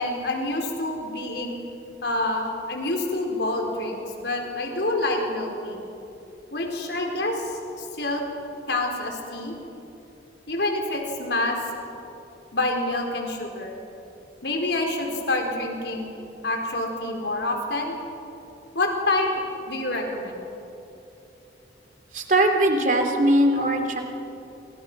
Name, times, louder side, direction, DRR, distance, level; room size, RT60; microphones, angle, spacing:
voice 1, 0.0-1.6 2.0-5.8 6.5-8.2 8.7-9.5 10.5-11.6 12.5-13.8 14.4-16.2 16.4-18.0 18.7-19.3 19.7-20.3 23.5-23.6, left 2 dB, 65° left, 2 dB, 4.3 m, -27 dB
voice 2, 22.1-24.0, right 1 dB, 45° right, 4 dB, 3.2 m, -20 dB
29.5 x 27.0 x 6.2 m, 2.9 s
head